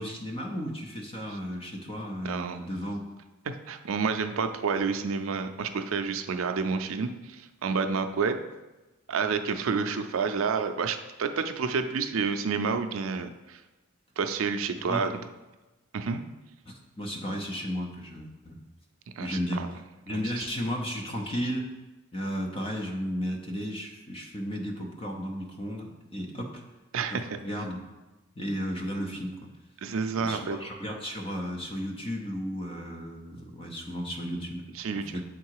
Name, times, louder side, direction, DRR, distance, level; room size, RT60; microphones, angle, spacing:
voice 1, 0.0-3.0 14.7-15.1 16.7-18.6 19.2-19.6 20.1-21.7 22.1-26.6 27.1-27.8 28.4-29.4 30.2-34.6 35.0-35.2, equal, 25° left, 1 dB, 0.8 m, -34 dB
voice 2, 2.2-2.6 3.5-8.4 9.1-13.6 14.2-15.1 15.9-16.2 19.2-19.7 20.1-20.4 26.9-27.3 29.8-30.6 34.7-35.2, right 5 dB, 80° right, 8 dB, 0.4 m, -29 dB
7.1 x 3.8 x 4.7 m, 1.1 s
head